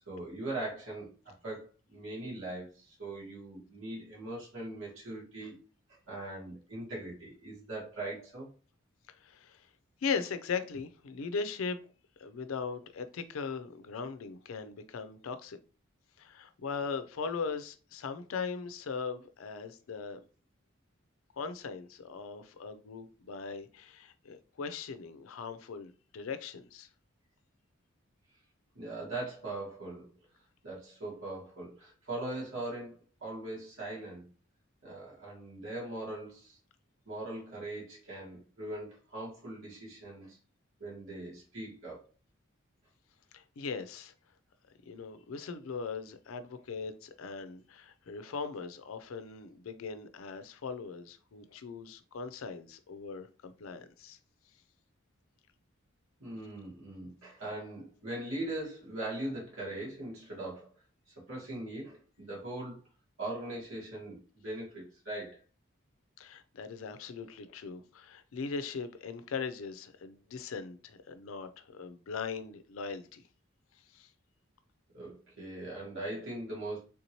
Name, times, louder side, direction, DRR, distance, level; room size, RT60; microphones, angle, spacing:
voice 1, 0.1-5.6 5.9-8.5 28.8-30.1 30.6-34.3 34.8-36.6 37.1-40.4 40.8-42.1 56.2-60.7 61.2-62.8 63.2-65.4 74.9-76.8, right 2 dB, 75° right, 1.9 m, -40 dB
voice 2, 9.2-9.7 10.0-11.8 12.2-15.6 16.2-20.2 21.4-26.9 43.3-44.1 44.9-54.2 66.2-73.2 73.9-74.1, left 5 dB, 80° left, 0.4 m, -39 dB
3.5 x 2.7 x 2.9 m
head